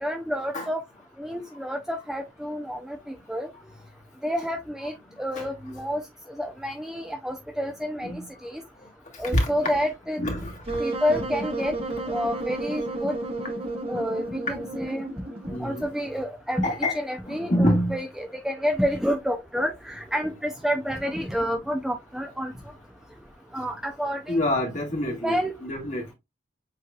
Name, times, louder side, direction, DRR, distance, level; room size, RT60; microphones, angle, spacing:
voice 1, 0.0-0.8 1.2-3.5 4.2-4.9 5.2-6.0 6.4-8.6 9.2-10.2 10.8-11.7 12.1-13.1 13.9-15.1 15.6-22.5 23.5-24.5 25.2-25.5, equal, ahead, 0.4 m, -29 dB
voice 2, 9.2-9.7 10.2-10.8 15.5-15.9 16.6-17.0 17.2-18.0 24.3-26.1, left 1 dB, 40° left, 1.7 m, -26 dB
Wind instrument woodwind instrument, 10.7-15.8, right 2 dB, 30° right, 0.8 m, -32 dB
7.4 x 3.1 x 2.3 m
head